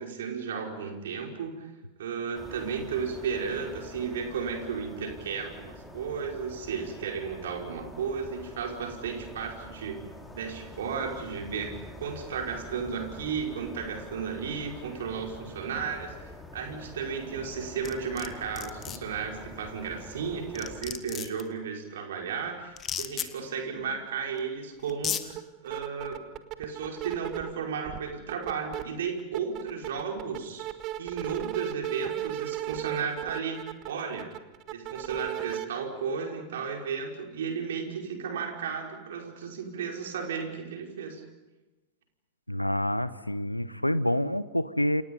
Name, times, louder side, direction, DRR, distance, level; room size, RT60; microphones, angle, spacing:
voice 1, 0.0-1.7 2.0-10.0 10.3-26.2 26.6-30.7 31.0-33.6 33.8-34.3 34.7-41.2, right 6 dB, 60° right, 2 dB, 5.3 m, -34 dB
sound 1, 2.3-20.8, left 1 dB, 5° left, 4.1 m, -46 dB
sound 2, 17.8-18.3 18.6-19.0 20.2-20.3 20.6-21.4 22.8-23.3 24.4-24.5 24.9-25.2, left 9 dB, 25° left, 1.8 m, -33 dB
sound 3, 25.3-25.4 25.7-27.5 27.8-28.8 29.2-35.6, right 13 dB, 40° right, 1.7 m, -35 dB
voice 2, 42.5-45.0, left 1 dB, 90° left, 17 dB, 1.0 m, -27 dB
29.5 x 28.0 x 5.6 m, 1.1 s
figure-of-eight pair, 90°, 0 cm